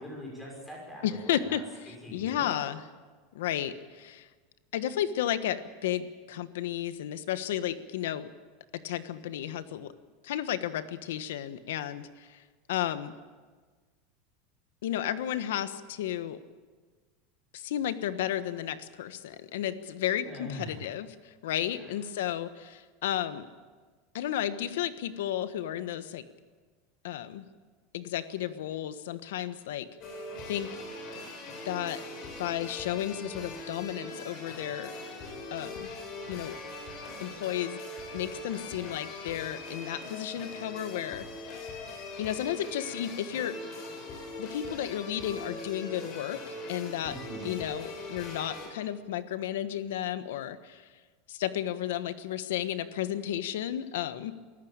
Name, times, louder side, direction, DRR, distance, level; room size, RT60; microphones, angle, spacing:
voice 1, 0.0-1.6 1.9-2.5 20.3-20.9 21.7-21.9 36.3-36.5 41.5-41.8 47.0-47.5, equal, 5° left, -2 dB, 6.1 m, -43 dB
voice 2, 1.0-1.6 1.9-2.8 3.3-4.3 4.7-8.3 8.8-9.9 10.2-12.4 12.7-13.1 14.8-16.4 17.5-23.5 24.1-26.2 27.0-27.4 27.9-29.9 30.5-30.7 31.6-32.0 32.4-34.9 35.5-35.9 36.3-36.5 37.2-37.8 38.1-41.7 42.2-43.5 44.4-47.2 47.4-50.8 51.3-54.3, left 11 dB, 90° left, 12 dB, 1.3 m, -33 dB
sound 1, 30.0-48.7, left 2 dB, 35° left, 4.5 m, -41 dB
24.0 x 14.0 x 8.9 m, 1.4 s
supercardioid pair, 180°, 0 cm